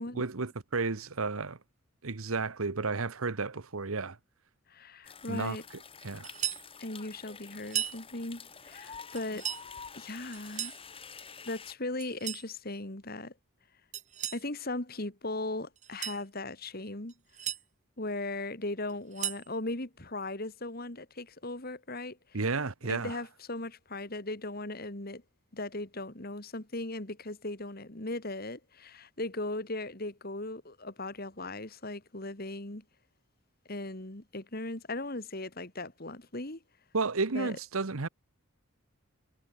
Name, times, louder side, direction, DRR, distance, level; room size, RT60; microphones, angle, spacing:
voice 1, 0.1-1.6 2.0-4.2 5.3-5.6 6.0-6.3 22.3-23.2 36.9-38.1, right 4 dB, 75° right, 1.1 m, -32 dB
voice 2, 4.7-5.6 6.8-9.5 10.0-10.7 11.4-13.3 14.3-17.1 18.0-22.4 22.9-25.2 25.5-32.8 33.7-36.6 37.3-37.6, left 2 dB, 45° left, 2.3 m, -38 dB
sound 1, 5.0-11.7, left 6 dB, 25° left, 2.4 m, -48 dB
sound 2, 6.2-6.7 7.6-8.0 9.2-9.7 10.3-10.8 12.0-12.5 13.9-14.5 15.8-16.2 17.1-17.6 18.9-19.5, right 11 dB, 35° right, 2.3 m, -36 dB
head